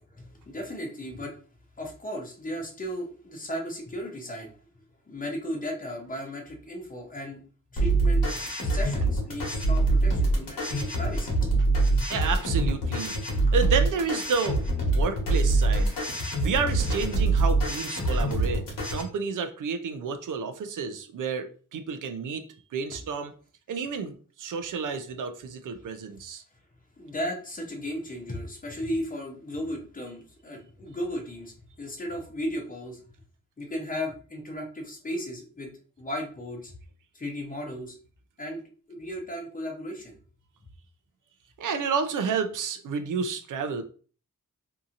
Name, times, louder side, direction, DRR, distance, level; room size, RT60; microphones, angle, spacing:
voice 1, 0.2-1.3 1.8-4.5 5.1-7.4 7.7-8.3 8.6-11.4 12.0-12.1 27.0-33.0 33.6-35.7 36.0-36.7 37.1-38.0 38.4-38.6 38.9-40.2, equal, 25° left, 1 dB, 0.6 m, -35 dB
sound 1, 7.8-19.0, right 2 dB, 90° left, 1.1 m, -25 dB
voice 2, 12.1-13.2 13.5-15.9 16.4-18.6 18.9-22.4 22.7-23.3 23.7-26.4 41.6-43.8, right 5 dB, 70° right, 8 dB, 0.5 m, -30 dB
2.7 x 2.7 x 2.4 m, 0.40 s
wide cardioid pair, 175°, 33 cm